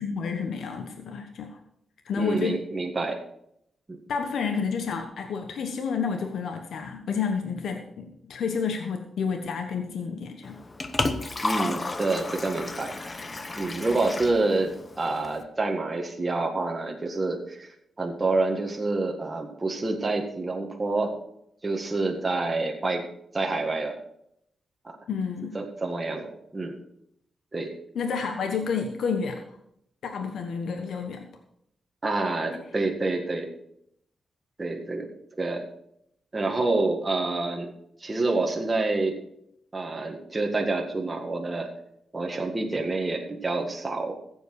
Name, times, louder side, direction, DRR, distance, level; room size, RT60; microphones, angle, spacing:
voice 1, 0.0-1.6 2.0-2.6 4.1-10.6 25.1-25.5 27.9-29.4 30.0-31.3, left 5 dB, 80° left, 5 dB, 1.2 m, -30 dB
voice 2, 2.2-3.2 3.9-4.0 11.4-12.9 13.6-14.7 15.0-17.7 18.0-21.2 21.6-23.0 23.3-24.0 24.8-25.0 25.5-26.8 27.5-27.7 32.0-33.5 34.6-35.1 35.4-35.7 36.3-37.7 38.0-39.2 39.7-41.7 42.1-44.1, right 3 dB, 25° right, 1 dB, 1.8 m, -27 dB
Liquid, 10.4-15.4, left 2 dB, 25° left, 1.0 m, -32 dB
15.0 x 7.9 x 4.7 m, 0.74 s
cardioid pair, 110°, 0 cm